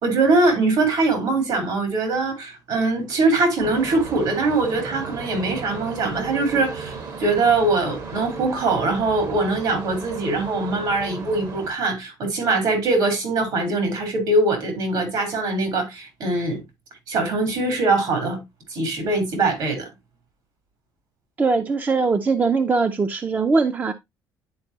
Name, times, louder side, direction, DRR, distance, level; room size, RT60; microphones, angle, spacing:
voice 1, 0.0-16.6 17.1-18.4 18.7-19.9, right 3 dB, 70° right, 3.4 m, -22 dB
sound 1, 3.6-11.7, right 4 dB, 50° right, 1.3 m, -35 dB
voice 2, 21.4-23.9, right 4 dB, 20° right, 0.6 m, -21 dB
10.5 x 4.5 x 2.7 m
cardioid pair, 115°, 8 cm